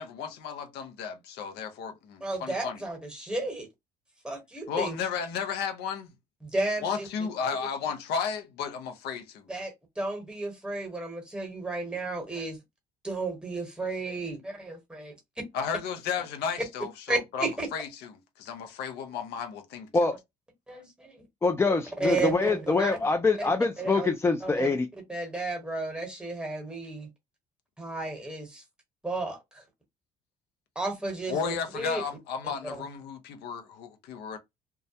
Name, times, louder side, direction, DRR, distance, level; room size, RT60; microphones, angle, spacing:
voice 1, 0.0-2.8 4.7-6.1 6.8-9.5 15.5-18.1 18.4-20.1 31.3-34.4, left 6 dB, 75° left, 0.6 m, -34 dB
voice 2, 2.2-3.7 4.2-4.9 6.4-7.1 9.5-12.6 13.0-15.1 17.1-17.7 20.7-21.2 22.0-22.9 23.8-24.1 24.4-24.7 25.1-27.1 27.8-28.6 29.0-29.6 30.7-32.0, right 2 dB, 5° right, 1.0 m, -33 dB
voice 3, 21.4-24.9, left 3 dB, 15° left, 0.3 m, -25 dB
2.2 x 2.0 x 2.7 m
cardioid pair, 110°, 17 cm